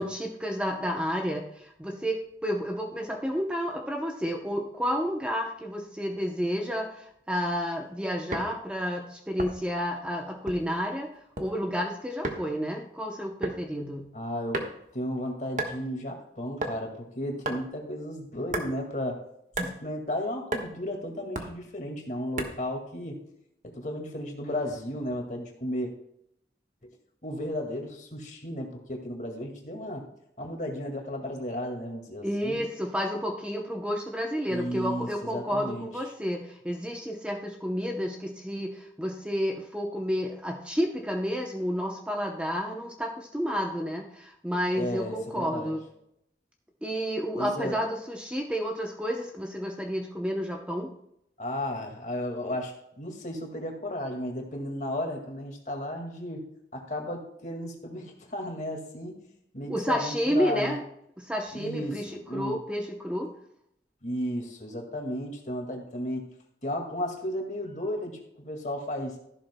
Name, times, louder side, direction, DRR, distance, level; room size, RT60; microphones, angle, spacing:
voice 1, 0.0-11.1 11.4-14.1 32.2-45.8 46.8-50.9 59.7-60.8 61.2-63.3, equal, 5° right, 1 dB, 0.7 m, -30 dB
sound 1, 8.3-8.5 9.4-9.8 10.5-10.8 11.1-11.5 12.2-12.4 13.4-13.6 14.5-14.9 15.6-15.8 16.6-16.8 17.4-17.7 18.5-18.7 19.5-19.8 20.5-20.7 21.4-21.6 22.4-22.7, right 2 dB, 45° right, 1.3 m, -32 dB
voice 2, 14.1-19.2 19.6-23.2 23.6-25.9 26.8-26.9 27.2-30.1 30.4-32.6 34.5-35.9 44.8-45.7 47.4-47.8 51.4-56.4 56.7-59.2 59.5-60.8 61.5-62.6 64.0-66.3 66.6-69.2, left 1 dB, 45° left, 2 dB, 2.0 m, -34 dB
13.5 x 11.5 x 2.2 m, 0.76 s
head